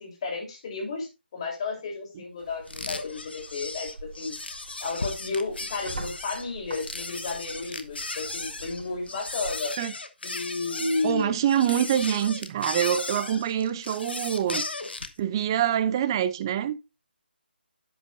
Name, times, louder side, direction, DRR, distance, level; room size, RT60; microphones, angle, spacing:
voice 1, 0.0-3.9 4.2-4.4 4.8-9.7 10.2-11.4, left 3 dB, 35° left, 3.4 m, -32 dB
sound 1, 2.4-9.7, right 2 dB, 45° right, 3.8 m, -45 dB
sound 2, 2.7-15.2, left 3 dB, 70° left, 1.1 m, -36 dB
voice 2, 11.0-14.7 15.2-16.8, right 10 dB, 25° right, 0.5 m, -25 dB
10.5 x 8.1 x 2.6 m
figure-of-eight pair, 150°, 6 cm